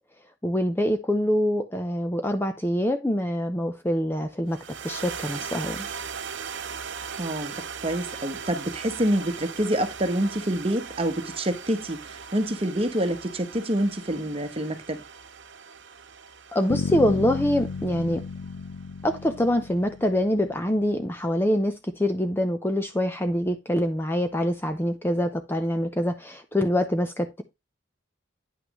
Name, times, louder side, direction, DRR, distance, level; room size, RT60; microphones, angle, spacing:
voice 1, 0.4-4.6 4.8-5.9 16.5-18.2 19.0-27.4, equal, 10° left, 0.6 m, -25 dB
sound 1, 4.5-18.9, right 6 dB, 65° right, 0.8 m, -39 dB
voice 2, 7.2-15.0, right 1 dB, 30° right, 1.2 m, -27 dB
Bass guitar, 16.7-20.6, left 4 dB, 85° left, 0.5 m, -33 dB
9.4 x 5.8 x 3.1 m
head